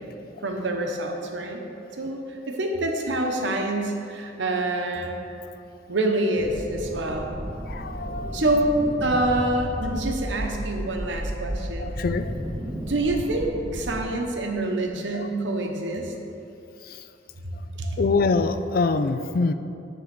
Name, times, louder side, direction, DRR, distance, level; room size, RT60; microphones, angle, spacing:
voice 1, 0.4-1.6 2.0-5.1 5.9-7.4 8.3-11.9 12.7-16.1 17.4-17.5 17.8-18.0, right 1 dB, 75° right, 2 dB, 0.9 m, -26 dB
sound 1, 6.4-14.0, equal, 10° right, 0.8 m, -33 dB
voice 2, 7.6-8.5 11.8-12.3 15.2-15.3 16.8-17.0 17.8-19.5, left 4 dB, 50° left, 10 dB, 0.3 m, -25 dB
10.5 x 3.8 x 6.0 m, 2.7 s
head